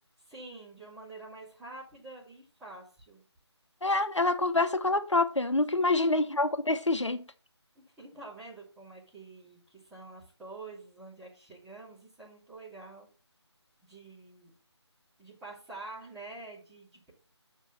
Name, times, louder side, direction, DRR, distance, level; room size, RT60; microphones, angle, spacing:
voice 1, 0.2-3.2 5.8-6.4 7.7-13.1 13.8-14.5 15.2-17.1, right 3 dB, 5° right, 2.7 m, -47 dB
voice 2, 3.8-7.2, left 2 dB, 85° left, 0.8 m, -26 dB
7.2 x 5.4 x 5.5 m
figure-of-eight pair, 155°, 15 cm